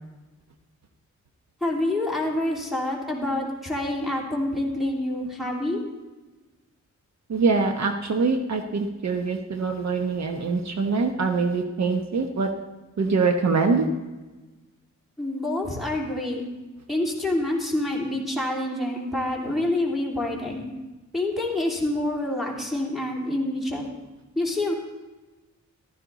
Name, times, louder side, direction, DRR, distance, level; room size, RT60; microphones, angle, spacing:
voice 1, 1.6-5.8 15.2-16.5 16.9-20.6 21.1-23.9 24.3-24.7, left 1 dB, ahead, -3 dB, 3.1 m, -27 dB
voice 2, 7.3-12.5 13.0-13.9, right 4 dB, 60° right, 5 dB, 1.0 m, -24 dB
15.0 x 13.0 x 4.1 m, 1.2 s
wide cardioid pair, 115°, 30 cm